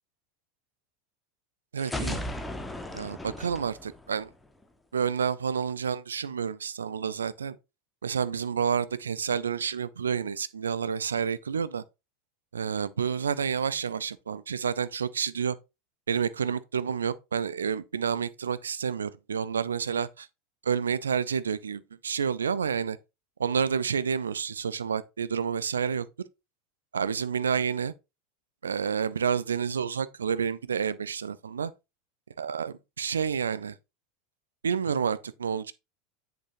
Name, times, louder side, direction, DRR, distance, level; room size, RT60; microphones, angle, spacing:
voice 1, 1.7-2.2 2.9-4.3 4.9-7.6 8.0-11.8 12.5-15.6 16.1-20.3 20.6-23.0 23.4-26.1 26.9-27.9 28.6-31.7 32.4-33.7 34.6-35.7, right 7 dB, 75° right, 0.5 m, -29 dB
sound 1, 1.8-4.6, left 1 dB, 10° left, 1.2 m, -36 dB
8.0 x 6.6 x 2.6 m
figure-of-eight pair, 80°, 0 cm